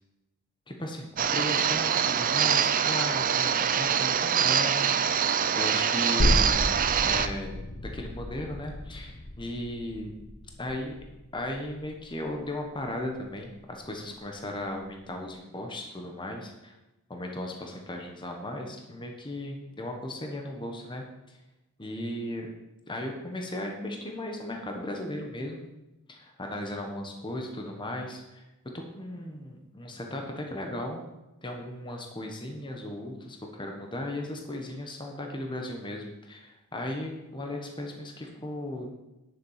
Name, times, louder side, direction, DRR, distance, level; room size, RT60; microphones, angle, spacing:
voice 1, 0.7-4.9 5.1-6.6 7.0-10.1 10.6-10.9 11.3-16.7 17.1-21.4 21.8-22.5 22.9-25.6 26.1-28.4 28.7-31.0 31.4-38.9, left 1 dB, 20° left, 2 dB, 1.2 m, -36 dB
sound 1, 1.2-7.3, right 8 dB, 40° right, 0.5 m, -25 dB
sound 2, 6.2-13.5 13.8-13.9, left 1 dB, 45° left, 1.0 m, -32 dB
9.9 x 7.5 x 5.7 m, 0.98 s
head